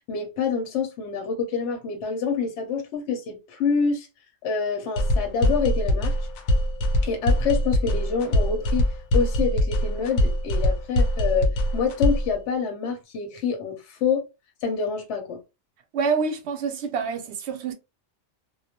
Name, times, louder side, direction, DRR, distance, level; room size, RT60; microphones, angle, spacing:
voice 1, 0.1-4.1 4.4-6.1 7.0-8.8 9.1-14.2 14.6-15.4, left 5 dB, 65° left, 0.9 m, -27 dB
sound 1, 5.0-12.3, left 1 dB, 90° left, 1.0 m, -22 dB
voice 2, 15.9-17.7, right 5 dB, 65° right, 0.8 m, -27 dB
2.3 x 2.0 x 2.7 m
omnidirectional pair, 1.4 m